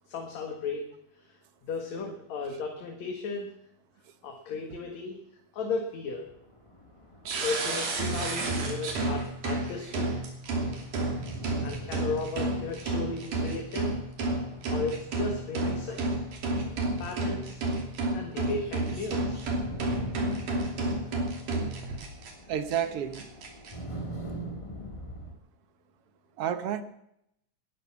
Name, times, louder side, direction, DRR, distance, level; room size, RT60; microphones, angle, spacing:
voice 1, 0.1-0.8 1.2-3.5 4.2-5.2 5.5-6.3 7.4-10.1 11.6-13.9 14.7-16.1 17.0-17.6 18.1-19.5, left 4 dB, 65° left, 2 dB, 3.0 m, -35 dB
sound 1, 6.1-9.0 9.3-25.3, right 1 dB, 15° left, 1.5 m, -44 dB
sound 2, 7.3-22.3 22.7-22.8 23.1-23.7, right 2 dB, 85° right, 4.5 m, -31 dB
voice 2, 22.5-23.3 26.4-26.8, right 9 dB, 60° right, 10 dB, 1.7 m, -30 dB
20.0 x 11.0 x 6.2 m, 0.78 s
omnidirectional pair, 3.6 m